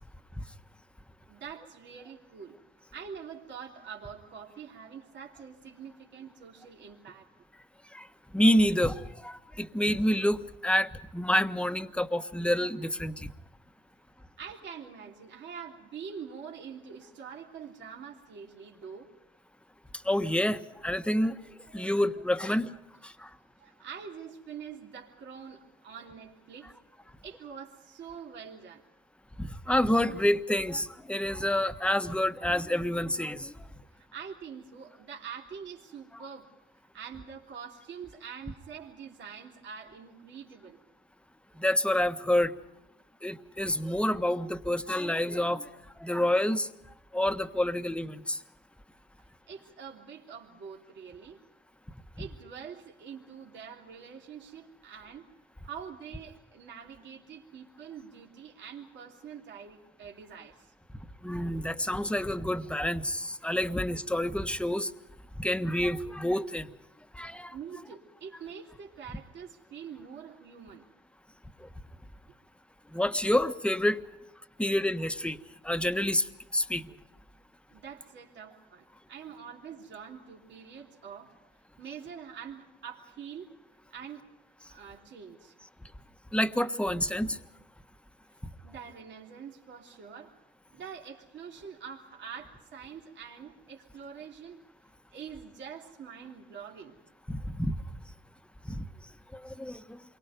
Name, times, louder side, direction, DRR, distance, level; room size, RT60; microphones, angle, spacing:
voice 1, 1.3-2.6 2.9-7.3 14.4-19.1 21.7-21.9 23.6-26.7 27.0-28.8 33.7-36.5 36.9-40.8 49.5-51.4 52.2-55.3 55.6-60.7 67.5-70.9 77.7-81.4 81.8-83.5 83.9-84.4 84.7-85.5 88.6-90.3 90.7-94.6 95.1-97.0, right 7 dB, 65° right, -1 dB, 3.3 m, -45 dB
voice 2, 8.3-13.3 20.0-21.4 21.7-22.7 23.0-23.3 29.4-33.5 41.6-42.5 43.2-45.7 46.0-46.7 47.1-48.4 52.2-52.3 61.2-64.9 65.4-66.7 67.1-67.5 71.6-71.7 72.9-74.0 74.6-75.4 75.6-76.3 76.5-76.8 86.3-87.4 97.3-97.8 98.7-98.8 99.4-100.0, left 1 dB, 5° left, 8 dB, 1.4 m, -28 dB
28.5 x 23.5 x 5.2 m, 0.93 s
cardioid pair, 90°, 20 cm